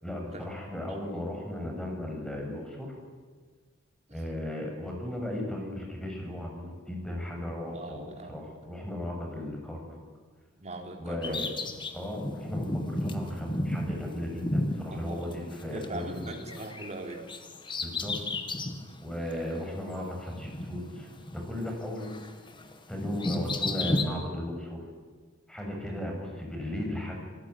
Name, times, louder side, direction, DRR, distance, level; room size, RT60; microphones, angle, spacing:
voice 1, 0.0-3.0 4.1-10.0 11.0-11.5 11.9-16.4 17.8-18.1 19.0-22.2 22.9-24.8 25.5-27.2, left 1 dB, 5° left, 1 dB, 6.9 m, -36 dB
voice 2, 7.7-8.6 10.5-11.4 14.9-15.4 15.6-17.3 25.8-26.0, right 2 dB, 35° right, 2 dB, 4.1 m, -41 dB
Bird vocalization bird call bird song, 11.2-15.9 16.1-18.8 19.3-19.4 20.3-21.7 22.0-24.0, left 1 dB, 25° left, 2.0 m, -33 dB
27.0 x 19.0 x 9.8 m, 1.5 s
head